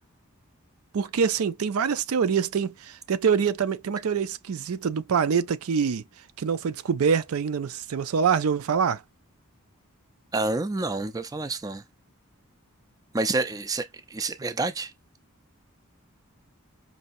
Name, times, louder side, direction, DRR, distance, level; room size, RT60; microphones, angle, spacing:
voice 1, 0.9-6.0 6.4-9.0, right 6 dB, 75° right, 0.4 m, -25 dB
voice 2, 10.3-11.8 13.1-14.9, right 2 dB, 15° right, 0.4 m, -28 dB
5.3 x 2.8 x 2.5 m
head